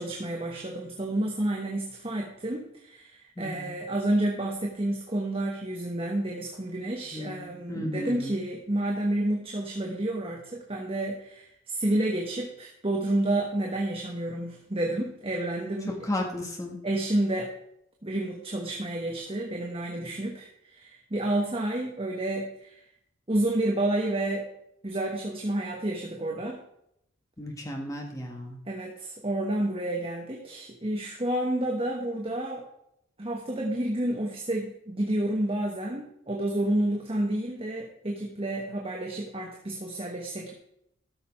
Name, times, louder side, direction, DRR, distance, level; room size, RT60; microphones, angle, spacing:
voice 1, 0.0-15.9 16.8-17.5 18.0-22.8 23.3-24.5 24.8-26.6 28.7-32.7 33.2-40.5, right 1 dB, 25° right, 0 dB, 1.2 m, -30 dB
voice 2, 3.4-3.8 7.1-8.3 16.0-16.8 27.4-28.6, left 1 dB, 15° left, 1 dB, 1.7 m, -34 dB
13.0 x 6.6 x 4.5 m, 0.75 s
head